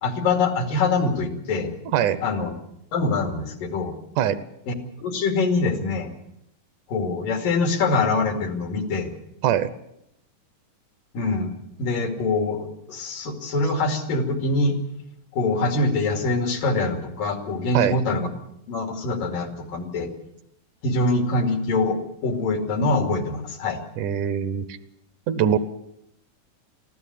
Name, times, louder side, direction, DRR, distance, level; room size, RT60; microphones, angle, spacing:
voice 1, 0.0-1.7 2.2-2.5 2.9-4.0 4.7-6.1 6.9-9.1 11.1-11.5 11.8-14.8 15.3-18.3 18.7-20.1 20.8-23.8, left 3 dB, 80° left, 5 dB, 4.1 m, -24 dB
voice 2, 24.0-24.8 25.3-25.6, right 9 dB, 70° right, 13 dB, 2.3 m, -22 dB
22.5 x 15.5 x 8.4 m, 0.78 s
omnidirectional pair, 3.8 m